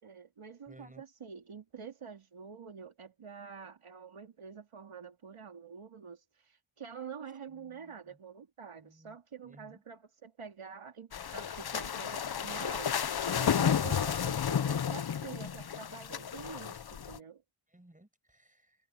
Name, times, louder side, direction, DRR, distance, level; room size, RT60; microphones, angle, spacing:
voice 1, 0.0-17.4, right 6 dB, 85° right, 3.1 m, -47 dB
voice 2, 0.7-1.0 7.5-8.2 8.8-9.2 9.4-9.8 17.7-18.8, right 1 dB, 15° right, 6.0 m, -58 dB
sound 1, 11.1-17.2, left 8 dB, 50° left, 0.7 m, -32 dB
wide cardioid pair, 70°, 49 cm